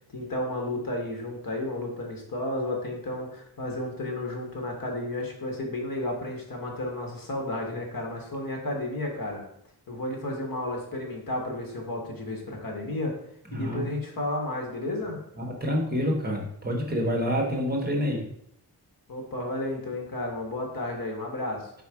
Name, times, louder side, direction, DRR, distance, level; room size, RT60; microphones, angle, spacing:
voice 1, 0.1-9.4 9.9-13.2 13.5-15.2 19.1-21.7, left 1 dB, 55° left, 1 dB, 1.4 m, -32 dB
voice 2, 13.5-13.9 15.4-18.3, equal, 25° right, 0 dB, 1.2 m, -27 dB
4.6 x 4.3 x 4.8 m, 0.72 s
wide cardioid pair, 150°, 40 cm